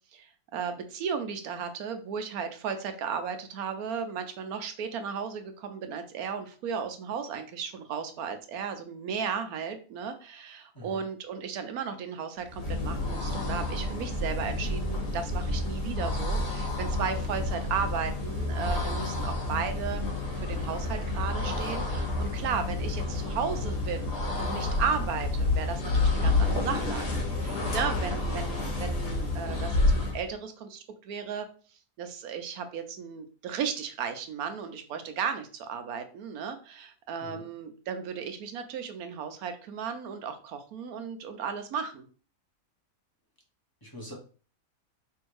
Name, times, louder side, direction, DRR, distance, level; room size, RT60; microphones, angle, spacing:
voice 1, 0.1-20.1 20.3-31.5 32.0-42.1, right 6 dB, 75° right, 7 dB, 1.2 m, -35 dB
sound 1, 12.4-30.3, left 2 dB, 40° left, 1.5 m, -29 dB
voice 2, 43.8-44.1, equal, 15° left, -2 dB, 0.9 m, -43 dB
3.5 x 2.7 x 4.6 m, 0.39 s
omnidirectional pair, 1.6 m